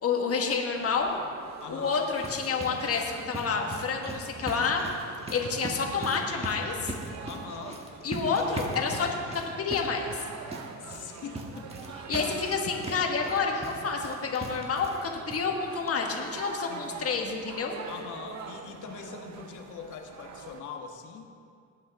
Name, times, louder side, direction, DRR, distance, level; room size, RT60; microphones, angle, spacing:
voice 1, 0.0-1.1 1.7-4.8 5.3-6.9 8.0-10.2 12.1-17.8, left 5 dB, 50° left, 1 dB, 1.6 m, -29 dB
sound 1, 0.7-20.6, right 6 dB, 65° right, 0.9 m, -45 dB
voice 2, 1.6-2.0 7.2-7.8 10.8-11.7 16.7-17.3 17.8-21.2, left 6 dB, 80° left, 3 dB, 1.3 m, -42 dB
sound 2, 1.8-15.0 15.3-15.4 15.9-16.0 16.3-16.4, right 1 dB, 20° right, 1.5 m, -40 dB
19.5 x 8.5 x 3.6 m, 2.3 s
cardioid pair, 90°, 30 cm